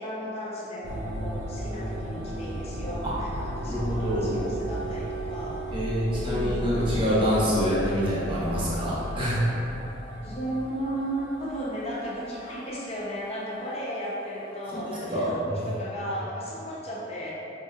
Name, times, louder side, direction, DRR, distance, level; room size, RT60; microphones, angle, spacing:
voice 1, 0.0-7.0 10.2-17.3, equal, 30° left, -7 dB, 0.7 m, -35 dB
sound 1, 0.8-15.0, right 1 dB, 65° right, 0.5 m, -36 dB
voice 2, 3.6-4.3 5.7-9.4 15.1-15.2, equal, 25° right, -8 dB, 0.8 m, -26 dB
5.1 x 2.7 x 2.3 m, 2.9 s
head